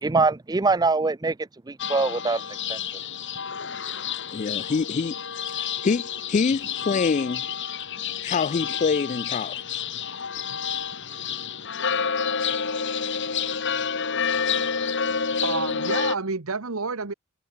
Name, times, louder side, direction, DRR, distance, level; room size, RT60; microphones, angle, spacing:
voice 1, 0.0-2.8, right 3 dB, 20° right, 0.5 m, -24 dB
sound 1, 1.8-16.2, left 6 dB, 55° left, 2.3 m, -29 dB
voice 2, 4.3-5.1 5.5-7.5 8.2-9.8, left 5 dB, 35° left, 0.3 m, -26 dB
voice 3, 15.4-17.1, right 4 dB, 65° right, 1.3 m, -29 dB
head